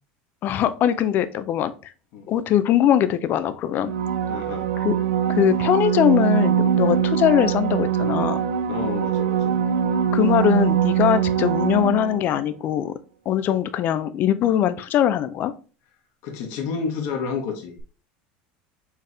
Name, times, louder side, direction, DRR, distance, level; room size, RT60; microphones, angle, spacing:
voice 1, 0.4-1.7 2.3-3.9 4.8-4.9 5.3-8.4 10.1-12.9 13.3-15.5, left 10 dB, 45° left, 13 dB, 0.5 m, -21 dB
sound 1, 3.8-12.4 17.8-17.9, right 8 dB, 90° right, 0.5 m, -22 dB
voice 2, 4.3-4.7 8.7-9.6 16.2-17.7, left 5 dB, 65° left, 2 dB, 1.3 m, -30 dB
4.6 x 3.5 x 3.3 m, 0.36 s
supercardioid pair, 120°, 4 cm